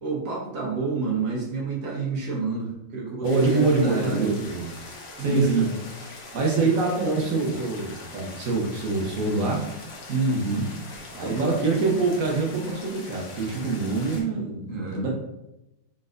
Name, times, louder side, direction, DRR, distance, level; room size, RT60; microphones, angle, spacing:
voice 1, 0.0-4.4 5.2-5.7 10.1-10.7 11.2-11.5 14.7-15.1, right 3 dB, 50° right, -3 dB, 1.1 m, -28 dB
sound 1, 3.2-14.2, left 2 dB, 90° left, 0.6 m, -42 dB
voice 2, 3.2-4.7 5.2-5.7 6.3-9.7 11.1-15.1, right 3 dB, 75° right, -1 dB, 0.7 m, -25 dB
3.9 x 3.9 x 2.5 m, 0.90 s
omnidirectional pair, 2.4 m